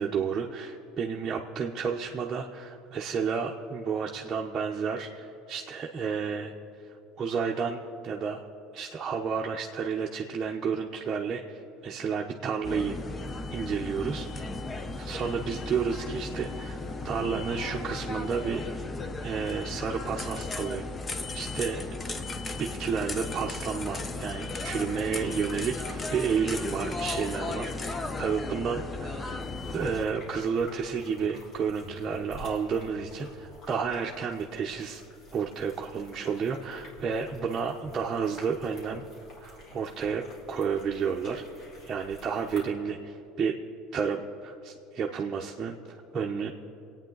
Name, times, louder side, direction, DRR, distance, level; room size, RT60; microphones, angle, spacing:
voice 1, 0.0-6.5 7.2-8.4 8.7-13.0 13.5-14.5 15.0-16.8 17.0-18.9 19.2-20.9 21.3-21.8 22.6-29.3 29.7-35.0 35.3-39.0 39.4-40.2 40.5-41.4 41.9-43.5 43.9-46.5, right 6 dB, 30° right, -1 dB, 0.9 m, -31 dB
sound 1, 12.6-30.1, left 3 dB, 25° left, 0.7 m, -35 dB
sound 2, 29.4-42.7, left 1 dB, 45° left, 3.2 m, -50 dB
26.0 x 9.0 x 4.0 m, 2.7 s
supercardioid pair, 110°, 0 cm